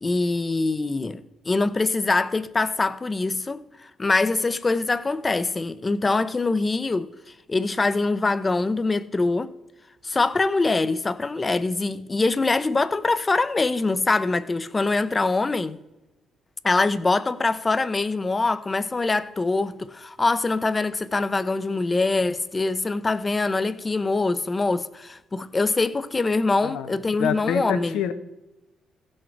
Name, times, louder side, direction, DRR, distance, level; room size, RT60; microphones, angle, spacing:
voice 1, 0.0-7.1 7.5-9.5 10.0-15.8 16.6-28.0, left 3 dB, 25° left, 0.7 m, -24 dB
voice 2, 26.6-26.9 27.2-28.1, left 9 dB, 90° left, 1.0 m, -26 dB
15.5 x 6.5 x 4.6 m
cardioid pair, 90°, 0 cm